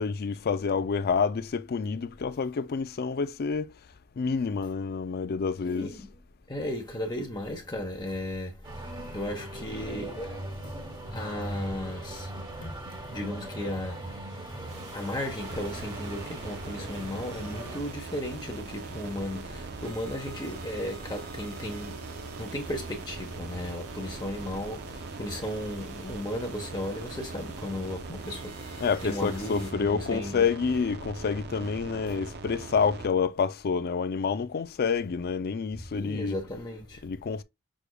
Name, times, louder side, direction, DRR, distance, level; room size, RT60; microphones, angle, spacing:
voice 1, 0.0-3.7 4.2-5.9 28.8-36.3 37.0-37.4, left 5 dB, 45° left, 0.4 m, -28 dB
voice 2, 5.6-6.1 6.5-10.8 11.1-12.3 12.6-12.7 13.1-14.2 14.5-30.5 35.9-37.0, left 1 dB, 20° left, 1.0 m, -35 dB
sound 1, 8.6-17.8, right 1 dB, 20° right, 1.3 m, -39 dB
sound 2, 14.7-29.7, right 3 dB, 90° right, 1.9 m, -49 dB
sound 3, 15.4-33.1, right 4 dB, 45° right, 0.6 m, -41 dB
6.3 x 3.3 x 2.3 m
head